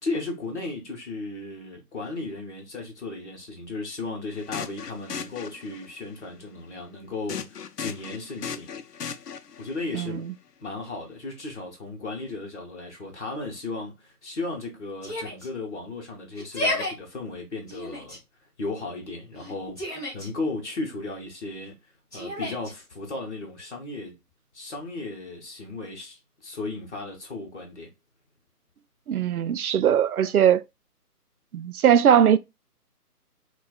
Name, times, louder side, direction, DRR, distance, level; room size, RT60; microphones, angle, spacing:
voice 1, 0.0-8.7 9.6-10.3 10.6-18.2 18.6-19.8 20.1-24.2 24.5-27.9, left 3 dB, 45° left, 1.0 m, -35 dB
sound 1, 4.3-6.0 7.3-9.8, left 7 dB, 80° left, 0.6 m, -37 dB
voice 2, 9.9-10.3 29.1-30.6 31.5-32.4, right 9 dB, 65° right, 0.5 m, -20 dB
Yell, 15.0-15.5 16.3-16.9 17.7-18.2 19.4-20.3 22.1-22.7, left 1 dB, 10° left, 0.9 m, -31 dB
4.2 x 2.3 x 2.3 m
figure-of-eight pair, 155°, 47 cm